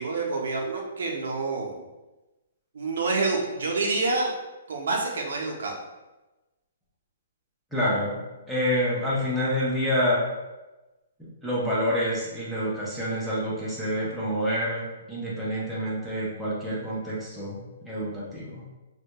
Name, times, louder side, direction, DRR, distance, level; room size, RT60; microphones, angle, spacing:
voice 1, 0.0-1.8 2.7-4.3 4.7-5.8, right 3 dB, 75° right, 0 dB, 0.5 m, -27 dB
voice 2, 7.7-8.2 8.5-10.2 11.4-17.6 17.8-18.6, equal, ahead, -9 dB, 0.4 m, -27 dB
2.2 x 2.1 x 2.8 m, 1.1 s
hypercardioid pair, 180°, 0 cm